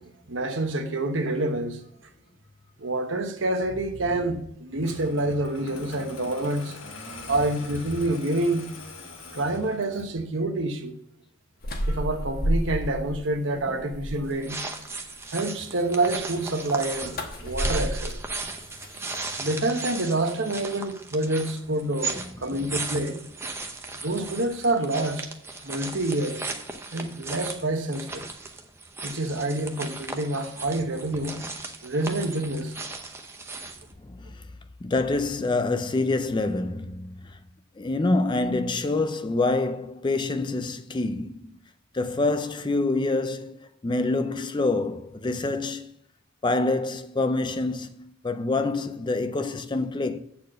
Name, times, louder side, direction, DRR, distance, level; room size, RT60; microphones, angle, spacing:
voice 1, 0.0-1.8 2.8-6.8 7.2-8.7 9.3-10.9 11.9-14.6 15.3-18.2 19.4-23.2 24.0-25.3 25.6-26.4 26.9-28.3 29.0-31.5 31.8-32.7, right 2 dB, 65° right, 1.1 m, -27 dB
Engine starting, 4.8-10.2, left 3 dB, 75° left, 1.3 m, -43 dB
sound 1, 11.6-13.2 13.6-14.4 16.6-19.4, equal, 45° left, 1.1 m, -31 dB
sound 2, 14.2-33.9, right 3 dB, 10° right, 0.7 m, -37 dB
voice 2, 22.1-22.6 34.0-34.5 34.8-37.4 37.8-41.6 41.9-45.9 46.4-50.2, left 2 dB, 25° left, 0.4 m, -26 dB
8.2 x 4.4 x 6.4 m
head